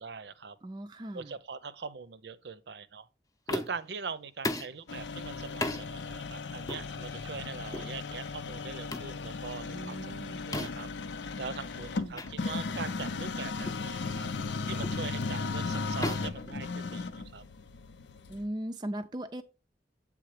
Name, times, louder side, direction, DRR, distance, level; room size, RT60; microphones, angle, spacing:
voice 1, 0.0-0.6 1.1-3.1 3.5-10.0 10.5-10.9 11.4-14.3 14.7-17.4, right 5 dB, 70° right, 0.6 m, -42 dB
voice 2, 0.6-1.3 9.7-10.5 12.0-12.3 18.3-19.4, right 1 dB, 25° right, 0.4 m, -38 dB
sound 1, 3.5-3.9 4.4-4.8 5.6-5.9 6.7-6.9 7.7-7.9 8.9-9.1 10.5-10.9 12.2-12.3 12.7-12.9 13.7-13.9 14.8-15.1 16.0-17.2, left 1 dB, 20° left, 0.6 m, -36 dB
sound 2, 4.9-18.4, left 4 dB, 90° left, 0.6 m, -36 dB
7.8 x 3.6 x 4.8 m
head